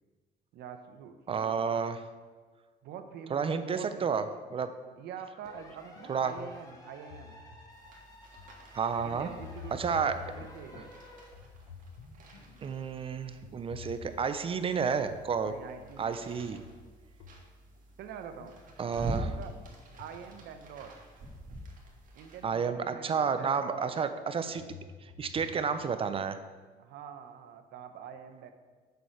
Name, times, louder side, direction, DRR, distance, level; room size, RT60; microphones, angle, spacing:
voice 1, 0.5-1.8 2.8-4.2 5.0-7.4 9.0-10.9 15.4-16.3 18.0-19.6 20.0-21.0 22.1-24.0 26.8-28.5, right 7 dB, 75° right, 8 dB, 0.8 m, -45 dB
voice 2, 1.3-2.0 3.3-4.2 4.5-4.7 6.1-6.3 8.7-9.3 9.7-10.2 12.6-15.5 16.0-16.6 18.8-19.2 22.4-24.6 25.2-26.4, right 6 dB, 35° right, 10 dB, 0.5 m, -31 dB
sound 1, 5.4-11.3, left 1 dB, 20° left, 1.4 m, -53 dB
sound 2, 6.0-6.1 6.4-7.9 8.4-8.6 8.9-11.0 11.3-12.8 13.4-14.6 15.0-15.4 15.7-17.8 18.4-21.0 21.9-22.0 22.5-22.6 23.9-25.6, left 6 dB, 85° left, 0.8 m, -50 dB
sound 3, 7.7-22.4, right 1 dB, 55° right, 1.6 m, -46 dB
6.9 x 6.3 x 4.5 m, 1.4 s
cardioid pair, 110°, 17 cm